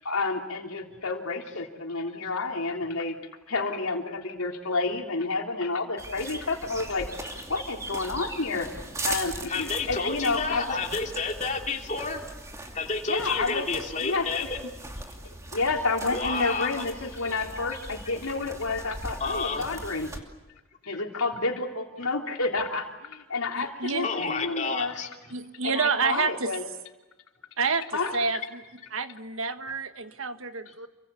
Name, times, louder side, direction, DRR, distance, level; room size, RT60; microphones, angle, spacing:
voice 1, 0.0-3.2 3.5-7.1 7.5-8.7 9.0-10.8 13.1-13.7 14.0-14.5 15.5-20.1 20.8-24.9 25.6-26.6 27.9-28.1, left 3 dB, 85° left, 2 dB, 3.5 m, -30 dB
sound 1, 6.0-20.2, right 2 dB, 15° right, 2.7 m, -40 dB
voice 2, 9.5-12.2 12.7-14.6 16.1-16.8 19.2-19.7 24.0-25.3, left 4 dB, 35° left, 2 dB, 3.1 m, -30 dB
voice 3, 23.5-24.1 25.3-26.6 27.6-28.6 28.9-30.9, right 5 dB, 70° right, 9 dB, 1.6 m, -29 dB
29.0 x 24.5 x 7.1 m, 1.1 s
head